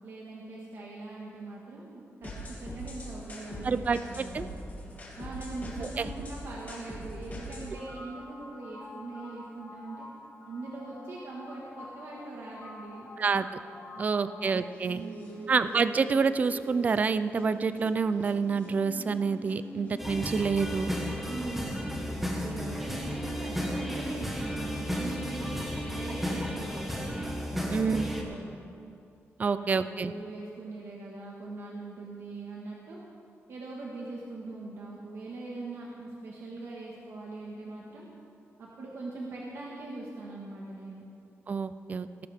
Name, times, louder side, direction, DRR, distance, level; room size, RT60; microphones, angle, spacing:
voice 1, 0.0-4.7 5.2-10.1 10.5-13.1 13.9-14.5 14.8-15.5 21.3-27.1 27.6-28.5 29.4-33.0 33.5-38.1 38.6-41.0, right 2 dB, 65° right, -3 dB, 1.6 m, -42 dB
sound 1, 2.2-20.2, equal, 35° left, 2.7 m, -44 dB
voice 2, 3.6-4.5 6.0-6.1 13.2-13.5 14.0-15.0 15.5-20.9 27.7-28.1 29.4-30.1 41.5-42.1, right 5 dB, 35° right, 13 dB, 0.4 m, -27 dB
sound 2, 20.0-28.2, equal, 5° right, 1.5 m, -33 dB
19.0 x 11.5 x 3.5 m, 2.5 s
wide cardioid pair, 155°, 5 cm